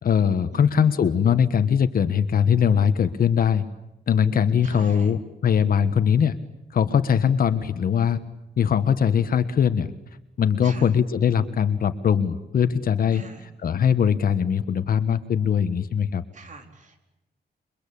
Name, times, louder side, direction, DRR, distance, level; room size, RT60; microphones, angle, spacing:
voice 1, 0.0-3.6 4.1-6.4 6.7-8.2 8.6-9.9 10.4-16.2, left 7 dB, 60° left, 10 dB, 1.4 m, -21 dB
voice 2, 0.5-1.0 4.6-5.1 10.6-10.9 13.1-13.4 16.3-17.0, right 3 dB, 45° right, 5 dB, 4.2 m, -43 dB
29.0 x 23.5 x 8.6 m, 0.92 s
wide cardioid pair, 135°, 17 cm